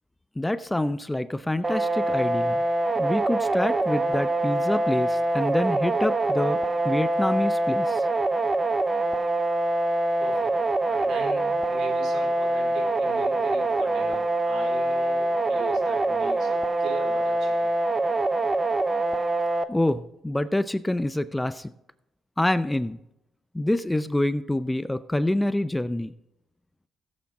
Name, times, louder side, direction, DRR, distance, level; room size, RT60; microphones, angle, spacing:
voice 1, 0.4-2.6 3.0-6.6 6.8-8.0 19.7-21.7 22.4-23.0 23.5-26.1, left 1 dB, 10° left, 14 dB, 0.5 m, -26 dB
sound 1, 1.6-19.6, right 2 dB, 20° right, 0.8 m, -25 dB
voice 2, 10.2-10.6 10.9-17.7, right 3 dB, 75° right, 2 dB, 3.7 m, -39 dB
15.5 x 8.3 x 3.7 m, 0.86 s
cardioid pair, 90°, 0 cm